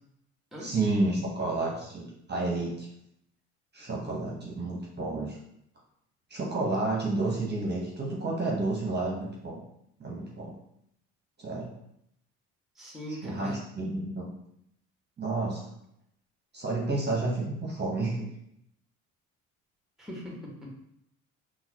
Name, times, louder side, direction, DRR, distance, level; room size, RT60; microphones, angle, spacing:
voice 1, 0.6-2.9 3.7-5.4 6.3-9.6 10.0-10.5 11.4-11.7 13.2-14.3 15.2-15.6 16.5-18.3, right 2 dB, 30° right, -3 dB, 1.1 m, -30 dB
voice 2, 12.7-13.5 20.0-20.7, equal, ahead, -2 dB, 1.2 m, -40 dB
3.8 x 2.4 x 2.9 m, 0.75 s
hypercardioid pair, 65°, 35 cm